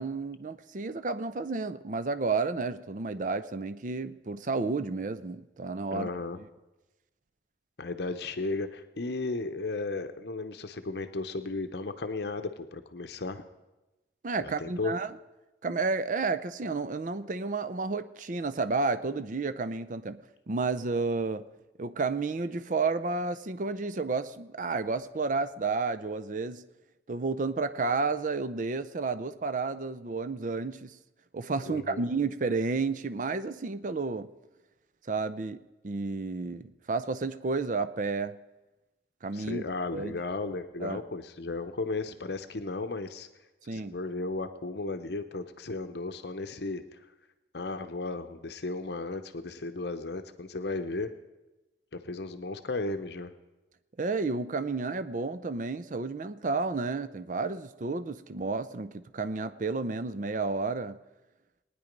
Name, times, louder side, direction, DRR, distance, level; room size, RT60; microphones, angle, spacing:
voice 1, 0.0-6.1 14.2-15.1 15.6-20.2 20.5-21.4 21.8-26.6 27.1-30.9 31.3-34.3 35.1-38.4 39.2-39.6 39.9-40.2 40.8-41.0 43.7-44.0 54.0-61.0, right 3 dB, 45° right, 12 dB, 0.5 m, -31 dB
voice 2, 5.9-6.4 7.8-13.4 14.4-14.9 31.7-32.0 39.3-43.3 43.7-47.0 47.5-51.1 51.9-53.3, left 3 dB, 65° left, 9 dB, 0.8 m, -35 dB
19.5 x 9.8 x 5.2 m, 1.0 s
head